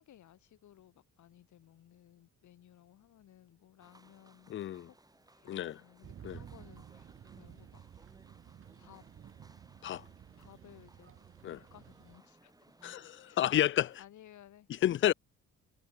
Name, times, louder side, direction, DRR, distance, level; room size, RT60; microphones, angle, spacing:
voice 1, 0.0-4.6 5.3-7.8 8.8-9.0 10.4-11.1 11.7-12.5 12.8-13.0 13.2-13.5 14.0-14.7, left 12 dB, 75° left, 6.7 m, -58 dB
sound 1, 3.8-14.0, right 2 dB, 10° right, 4.3 m, -63 dB
voice 2, 4.5-4.9 5.5-5.8 6.2-6.4 9.8-10.0 11.4-11.6 12.8-14.0 14.8-15.1, left 12 dB, 40° left, 0.4 m, -30 dB
sound 2, 6.0-12.2, right 9 dB, 45° right, 0.9 m, -53 dB
cardioid pair, 90°, 30 cm